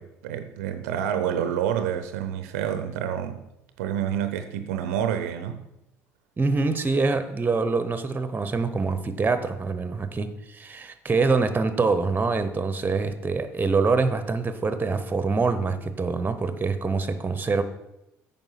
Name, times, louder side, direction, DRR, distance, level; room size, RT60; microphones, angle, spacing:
voice 1, 0.0-3.4 3.8-5.6, right 9 dB, 75° right, 9 dB, 0.7 m, -28 dB
voice 2, 6.4-17.6, right 4 dB, 25° right, 11 dB, 1.0 m, -25 dB
9.1 x 5.6 x 5.8 m, 0.86 s
figure-of-eight pair, 60°, 8 cm